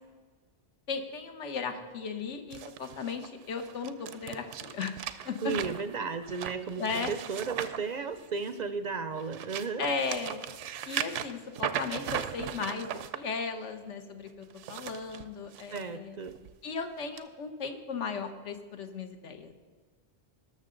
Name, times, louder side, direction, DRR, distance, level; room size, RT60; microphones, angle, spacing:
voice 1, 0.9-4.9 5.2-5.5 6.8-7.1 9.8-10.4 10.8-16.2 16.6-19.5, left 5 dB, 80° left, 7 dB, 1.2 m, -36 dB
sound 1, 2.5-8.6 9.1-13.2 14.4-15.8 16.3-16.5 17.2-17.3, right 9 dB, 85° right, 0.9 m, -38 dB
voice 2, 5.4-9.8 15.7-16.4, right 5 dB, 55° right, 10 dB, 0.5 m, -34 dB
19.5 x 6.6 x 3.8 m, 1.5 s
omnidirectional pair, 1.2 m